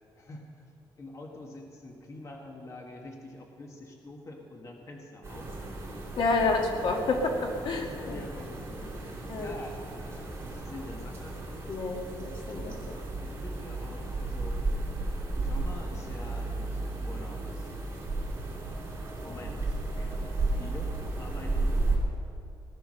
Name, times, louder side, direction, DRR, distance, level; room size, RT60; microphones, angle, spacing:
voice 1, 0.2-0.7 1.0-5.5 6.2-6.4 7.7-11.4 12.5-12.9 13.2-14.6 15.4-17.8 18.6-21.9, left 2 dB, 35° left, 1 dB, 1.7 m, -46 dB
sound 1, 5.2-22.0, right 2 dB, 25° right, 5.0 m, -34 dB
voice 2, 6.2-8.2 9.3-9.6 11.7-13.0, left 3 dB, 65° left, 1 dB, 2.0 m, -29 dB
18.5 x 10.5 x 6.4 m, 2.5 s
cardioid pair, 145°, 9 cm